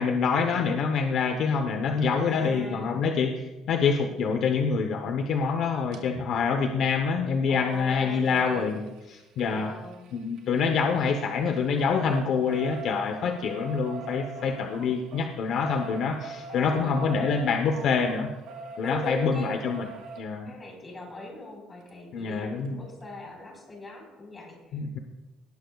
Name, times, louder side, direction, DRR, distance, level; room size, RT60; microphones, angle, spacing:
voice 1, 0.0-3.3 3.7-8.8 9.1-9.7 10.1-18.3 18.8-19.9 20.2-20.5 22.1-22.8 24.7-25.0, left 5 dB, 55° left, 5 dB, 0.9 m, -26 dB
voice 2, 2.1-3.1 7.5-8.8 9.4-10.0 16.5-17.4 18.8-19.6 20.4-25.0, left 1 dB, 20° left, 0 dB, 4.5 m, -40 dB
sound 1, 5.9-6.0 7.7-11.2 11.5-20.2 21.9-22.0 22.3-22.4 22.7-22.8, right 5 dB, 75° right, 1.9 m, -43 dB
19.0 x 11.5 x 2.4 m, 1.1 s
cardioid pair, 130°, 0 cm